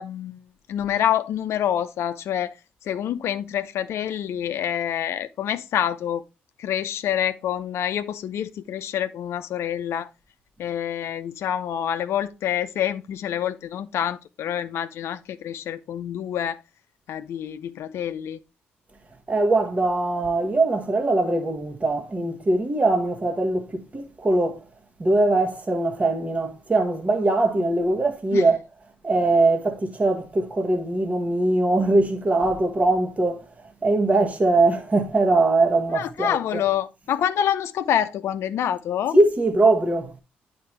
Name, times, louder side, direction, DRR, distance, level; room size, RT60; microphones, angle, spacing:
voice 1, 0.0-6.2 6.6-10.1 10.6-16.6 17.1-18.4 28.3-28.4 35.9-39.1, left 10 dB, 70° left, 0.6 m, -27 dB
voice 2, 19.3-24.6 25.0-28.6 29.0-33.5 33.8-36.6 39.1-40.1, right 2 dB, 30° right, 1.4 m, -21 dB
9.2 x 4.5 x 3.2 m
hypercardioid pair, 50°, 5 cm